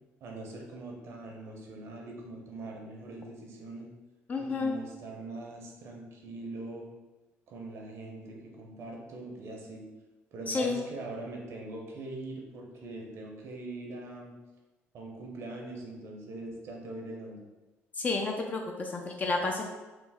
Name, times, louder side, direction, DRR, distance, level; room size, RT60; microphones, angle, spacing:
voice 1, 0.2-3.9 4.4-6.9 7.5-9.8 10.3-14.3 14.9-17.5, right 2 dB, 60° right, 0 dB, 0.6 m, -42 dB
voice 2, 4.3-4.7 10.5-10.8 18.0-19.6, left 3 dB, 30° left, 2 dB, 0.3 m, -30 dB
3.1 x 2.0 x 3.4 m, 1.2 s
cardioid pair, 100°, 5 cm